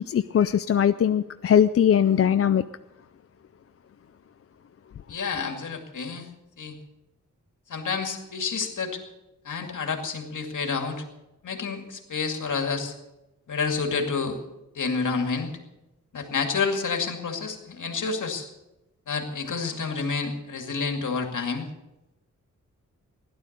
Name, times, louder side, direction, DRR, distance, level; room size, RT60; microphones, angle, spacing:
voice 1, 0.0-2.6, left 9 dB, 45° left, 11 dB, 0.4 m, -20 dB
voice 2, 5.1-6.3 6.6-6.8 7.7-9.0 9.4-11.0 11.4-12.9 13.5-14.4 14.7-15.5 16.1-18.5 19.1-21.7, left 5 dB, 65° left, 4 dB, 2.3 m, -29 dB
16.0 x 11.5 x 6.7 m, 0.99 s
wide cardioid pair, 165°, 32 cm